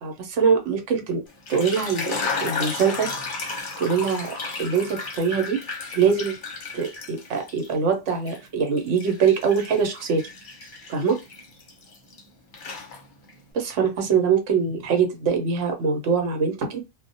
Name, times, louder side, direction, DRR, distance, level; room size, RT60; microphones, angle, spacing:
voice 1, 0.0-1.2 1.5-2.1 2.4-3.1 3.8-4.3 4.6-5.6 5.9-6.3 6.7-10.2 10.9-11.2 13.5-16.8, right 6 dB, 70° right, 4 dB, 1.0 m, -23 dB
sound 1, 1.3-7.7 8.1-12.2 12.5-13.4, left 4 dB, 50° left, 0.7 m, -33 dB
2.3 x 2.0 x 2.6 m, 0.25 s
omnidirectional pair, 1.3 m